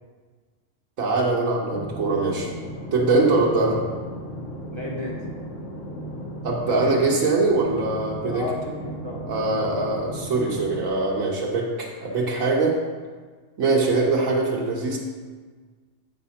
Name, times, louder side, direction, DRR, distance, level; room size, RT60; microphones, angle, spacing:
voice 1, 1.0-2.5 2.9-3.8 6.4-8.4 9.3-12.8 13.6-15.0, right 3 dB, 75° right, -3 dB, 1.4 m, -22 dB
sound 1, 1.7-10.9, equal, 75° left, 1.5 m, -35 dB
voice 2, 4.7-5.3 8.3-9.8, left 1 dB, 20° right, -4 dB, 1.1 m, -34 dB
8.5 x 4.7 x 5.6 m, 1.5 s
omnidirectional pair, 1.4 m